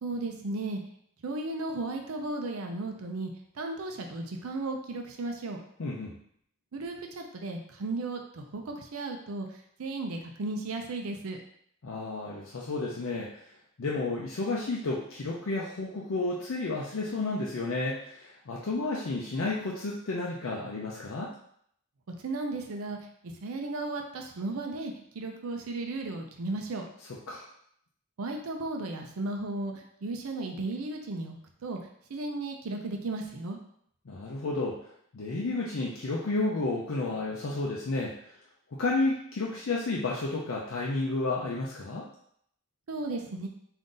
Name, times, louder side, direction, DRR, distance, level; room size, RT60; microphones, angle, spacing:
voice 1, 0.0-0.8 1.2-3.3 3.6-5.6 6.7-9.5 9.8-11.4 22.1-23.0 23.2-26.9 28.2-29.7 30.0-31.4 31.6-31.8 32.1-33.6 42.9-43.5, right 2 dB, 85° right, 3 dB, 0.5 m, -35 dB
voice 2, 5.8-6.1 11.8-13.3 13.8-21.3 27.0-27.5 34.1-34.8 35.1-38.2 38.7-42.1, left 2 dB, 65° left, -3 dB, 0.5 m, -31 dB
3.8 x 2.6 x 3.7 m, 0.68 s
head